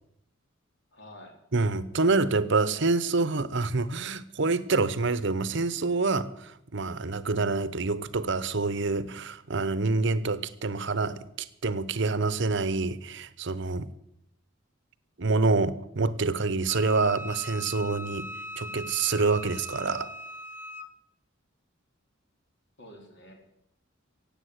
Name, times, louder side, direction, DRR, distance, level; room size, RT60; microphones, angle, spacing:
voice 1, 0.9-1.3 22.8-23.3, left 1 dB, 60° left, 3.9 m, -48 dB
voice 2, 1.5-13.9 15.2-18.3 18.6-20.1, right 3 dB, 60° right, 0.9 m, -27 dB
Wind instrument woodwind instrument, 16.7-20.9, left 1 dB, 10° right, 1.1 m, -40 dB
16.5 x 8.6 x 8.0 m
head